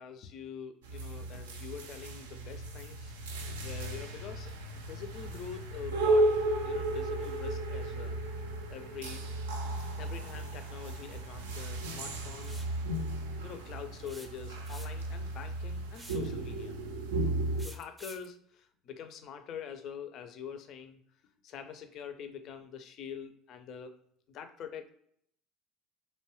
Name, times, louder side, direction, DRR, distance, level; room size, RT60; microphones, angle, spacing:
voice 1, 0.0-3.1 3.6-6.3 6.6-8.2 8.7-9.2 10.0-12.6 13.4-16.8 17.6-21.0 21.4-24.0 24.3-24.9, left 7 dB, 50° left, 8 dB, 0.4 m, -45 dB
sound 1, 0.8-17.7, right 2 dB, 75° right, 0.4 m, -34 dB
sound 2, 12.4-12.8 14.1-15.1 15.9-16.3 17.6-18.3, right 1 dB, 5° right, 0.5 m, -49 dB
2.6 x 2.2 x 3.0 m, 0.66 s
figure-of-eight pair, 65°, 0 cm